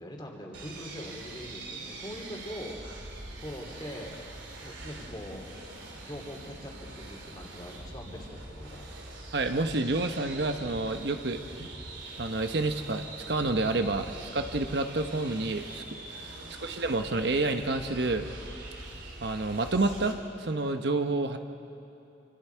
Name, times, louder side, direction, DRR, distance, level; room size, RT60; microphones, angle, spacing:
voice 1, 0.0-2.8 3.4-4.2 4.6-5.5 5.9-8.9 16.2-16.5, equal, 25° left, 1 dB, 2.9 m, -42 dB
sound 1, 0.5-20.1, right 2 dB, 90° right, 3.2 m, -43 dB
voice 2, 9.3-11.7 12.2-18.2 19.2-21.4, right 2 dB, 65° right, 6 dB, 1.0 m, -29 dB
27.5 x 25.5 x 4.6 m, 2.8 s
head